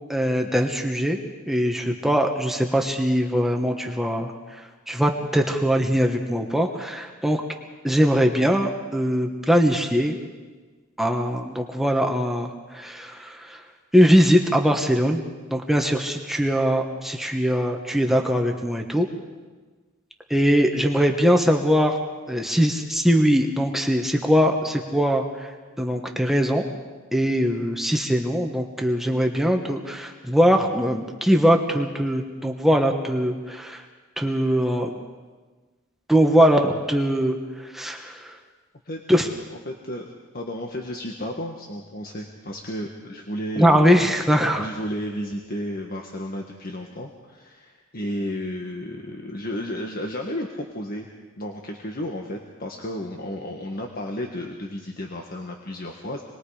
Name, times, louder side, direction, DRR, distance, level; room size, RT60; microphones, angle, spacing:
voice 1, 0.1-1.2 1.5-4.6 4.9-7.4 7.8-10.2 11.0-13.6 13.9-15.2 15.5-19.1 20.3-22.0 22.3-25.5 25.8-26.6 27.1-33.8 34.2-35.0 36.1-38.4 39.1-39.3 43.6-44.7, equal, ahead, 2 dB, 1.4 m, -21 dB
voice 2, 38.8-39.4 39.6-40.1 40.3-43.9 44.6-51.1 51.4-56.2, left 1 dB, 45° left, 1 dB, 1.6 m, -32 dB
27.5 x 20.5 x 5.0 m, 1.4 s
head